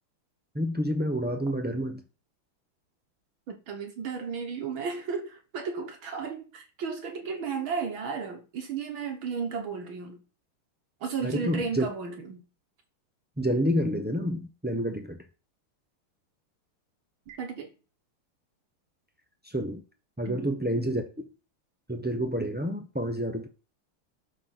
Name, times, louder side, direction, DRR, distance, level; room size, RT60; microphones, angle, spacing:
voice 1, 0.5-2.0 11.2-11.9 13.4-15.2 19.4-19.8 20.2-21.2 21.9-23.5, equal, 15° right, 0.4 m, -29 dB
voice 2, 3.5-10.2 11.0-12.4 17.3-17.7 20.2-20.5, right 5 dB, 70° right, 2.3 m, -34 dB
12.0 x 4.2 x 6.0 m
omnidirectional pair, 2.4 m